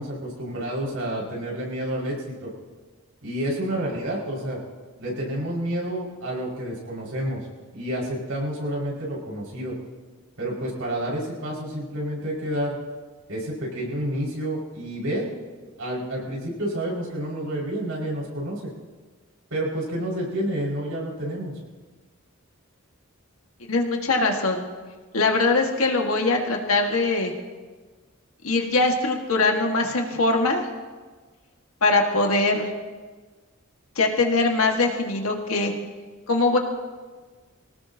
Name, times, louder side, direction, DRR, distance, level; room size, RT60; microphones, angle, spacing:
voice 1, 0.0-2.5 3.2-4.6 5.0-7.4 7.7-9.7 10.4-12.8 13.3-15.3 15.8-18.7 19.5-21.5, right 1 dB, 80° right, -4 dB, 5.6 m, -29 dB
voice 2, 23.7-24.6 25.1-27.3 28.4-30.6 31.8-32.7 34.0-35.7 36.3-36.6, left 3 dB, 85° left, 2 dB, 1.9 m, -22 dB
24.5 x 18.0 x 2.9 m, 1.4 s
head